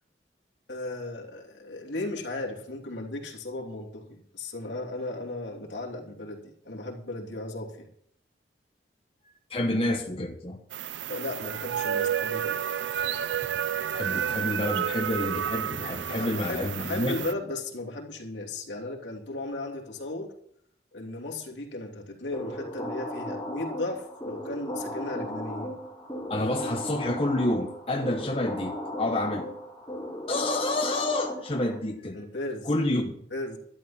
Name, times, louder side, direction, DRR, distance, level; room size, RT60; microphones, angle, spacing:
voice 1, 0.7-7.9 11.1-12.6 16.1-20.3 20.9-25.7 32.1-32.7 33.3-33.6, left 2 dB, 75° left, -1 dB, 2.9 m, -36 dB
voice 2, 9.5-10.6 13.9-17.2 26.3-29.5 30.3-32.2 32.6-33.1, left 1 dB, 30° left, 2 dB, 1.0 m, -28 dB
sound 1, 10.7-17.3, right 9 dB, 75° right, 0.4 m, -30 dB
sound 2, 22.3-31.8, left 1 dB, 15° left, 4.9 m, -36 dB
12.5 x 12.0 x 4.3 m, 0.68 s
head